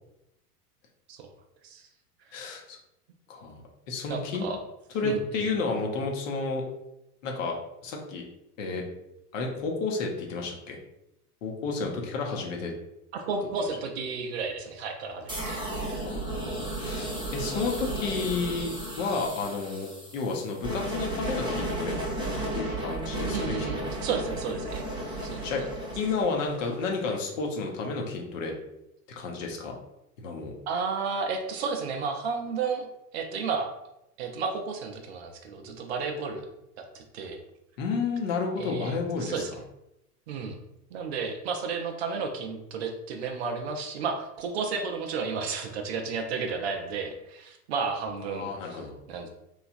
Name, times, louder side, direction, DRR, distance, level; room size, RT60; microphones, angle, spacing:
voice 1, 2.3-2.8 3.3-3.6 3.9-4.4 4.9-6.6 7.2-7.5 7.8-8.2 8.6-8.8 9.3-10.8 11.4-12.7 16.0-22.0 22.5-23.9 25.4-25.6 26.0-28.5 29.2-29.7 30.2-30.5 37.8-39.4 48.3-49.0, left 4 dB, 55° left, 1 dB, 0.8 m, -31 dB
voice 2, 4.1-4.6 5.0-5.4 13.1-15.6 23.3-24.8 25.2-25.5 30.7-32.9 33.1-33.7 34.2-36.5 36.8-37.4 38.6-39.5 40.3-40.6 40.9-48.8 49.1-49.3, right 5 dB, 45° right, 4 dB, 0.5 m, -32 dB
sound 1, 15.3-27.1, right 1 dB, 10° right, 0.9 m, -34 dB
3.0 x 2.4 x 2.4 m, 0.86 s
figure-of-eight pair, 95°, 47 cm